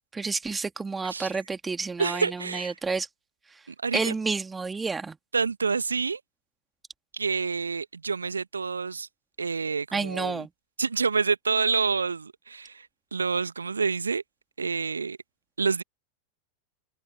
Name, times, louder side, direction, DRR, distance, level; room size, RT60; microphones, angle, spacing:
voice 1, 0.2-3.1 3.5-3.6 3.9-5.2 9.9-10.5, right 4 dB, 15° right, 2.6 m, -30 dB
voice 2, 2.0-2.7 3.7-4.1 5.3-6.2 7.1-9.1 9.4-10.4 10.8-14.2 14.6-15.2 15.6-15.8, right 5 dB, 75° right, 1.4 m, -28 dB
figure-of-eight pair, 90°, 0 cm